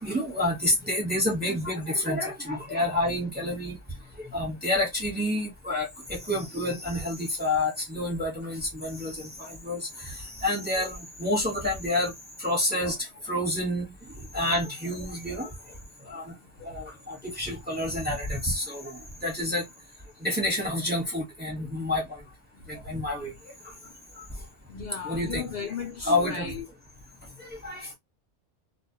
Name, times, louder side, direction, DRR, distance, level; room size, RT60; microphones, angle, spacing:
voice 1, 0.0-3.8 4.2-12.1 12.4-13.0 13.3-13.9 14.3-15.5 16.1-16.3 16.6-19.6 20.2-22.0 22.7-23.3 24.2-24.3 25.0-25.4 26.0-26.5 27.4-27.9, left 1 dB, 10° right, 0.9 m, -29 dB
voice 2, 24.7-26.7, left 6 dB, 60° left, 0.8 m, -35 dB
2.2 x 2.1 x 2.7 m
omnidirectional pair, 1.3 m